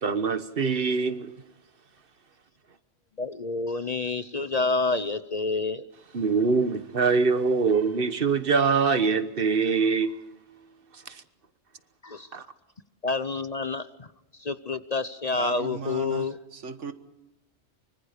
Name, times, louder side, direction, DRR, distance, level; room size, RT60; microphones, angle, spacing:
voice 1, 0.0-1.3 6.1-10.2 11.1-11.2 12.3-12.4, right 5 dB, 50° right, 1.4 m, -24 dB
voice 2, 3.2-5.9 12.0-12.3 13.0-14.1 14.4-16.4, left 3 dB, 40° left, 0.8 m, -28 dB
voice 3, 15.3-16.9, right 5 dB, 80° right, 1.7 m, -37 dB
25.0 x 24.5 x 5.1 m
omnidirectional pair, 1.2 m